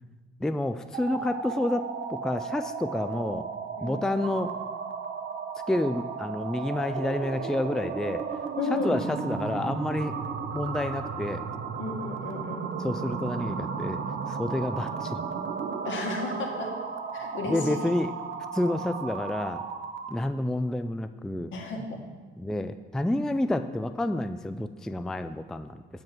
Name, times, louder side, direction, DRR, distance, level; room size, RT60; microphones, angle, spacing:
voice 1, 0.4-3.5 3.8-4.5 5.7-8.2 8.7-10.2 10.5-11.4 12.8-15.2 17.5-18.1 18.5-19.6 20.1-21.5 22.4-25.8, left 1 dB, 5° left, 10 dB, 0.3 m, -29 dB
sound 1, 0.8-20.2, right 6 dB, 75° right, 0.8 m, -34 dB
voice 2, 8.6-9.0 11.8-12.7 15.8-16.7 17.1-17.7 21.5-22.0, left 3 dB, 75° left, 0 dB, 1.8 m, -33 dB
7.2 x 5.4 x 5.9 m, 1.4 s
cardioid pair, 90°, 20 cm